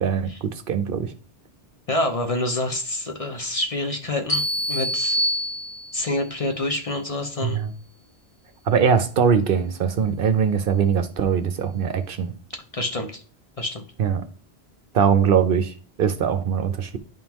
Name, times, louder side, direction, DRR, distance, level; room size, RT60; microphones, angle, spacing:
voice 1, 0.0-1.1 7.4-7.7 8.7-12.3 14.0-14.2 14.9-17.0, right 7 dB, 60° right, 0.7 m, -21 dB
voice 2, 1.9-5.2 5.9-7.6 12.7-13.2 13.6-13.8, left 2 dB, 40° left, 0.7 m, -27 dB
sound 1, 4.3-6.2, equal, 75° left, 2.1 m, -25 dB
10.5 x 3.7 x 3.0 m
omnidirectional pair, 1.1 m